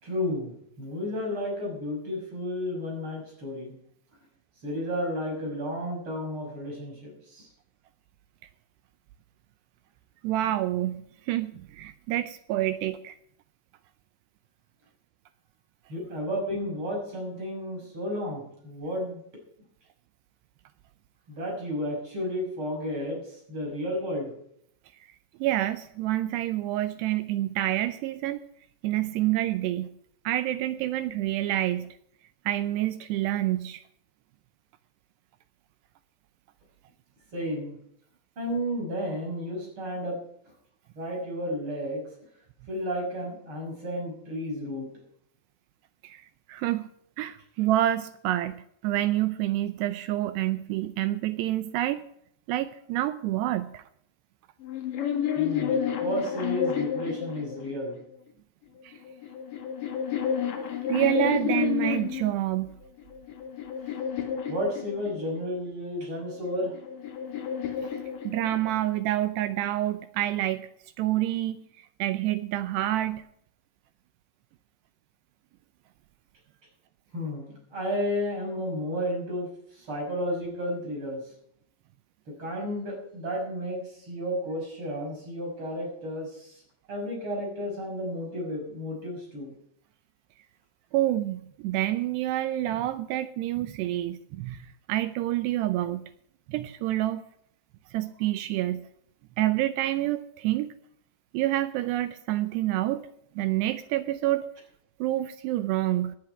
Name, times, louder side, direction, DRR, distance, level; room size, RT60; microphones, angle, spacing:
voice 1, 0.0-3.8 4.6-7.5 15.9-19.2 21.3-24.3 37.3-37.8 38.4-40.2 41.0-42.0 42.7-44.9 55.4-58.0 64.5-66.7 77.1-79.5 79.7-81.2 82.4-86.6 86.9-89.5, equal, 30° right, 0 dB, 6.6 m, -32 dB
voice 2, 10.2-13.2 25.4-28.4 28.8-29.9 30.2-32.0 32.5-33.8 46.0-46.9 47.2-52.0 52.5-53.8 58.8-58.9 60.9-62.7 68.2-70.7 71.0-73.3 90.9-96.1 96.5-97.2 97.9-98.9 99.4-100.7 101.3-103.1 103.4-104.5 105.0-106.2, right 14 dB, 80° right, 13 dB, 2.6 m, -28 dB
sound 1, 54.6-58.0 58.9-62.3 63.0-65.4 66.4-68.9, left 8 dB, 55° left, 3.2 m, -30 dB
18.5 x 11.0 x 4.8 m, 0.69 s
omnidirectional pair, 5.1 m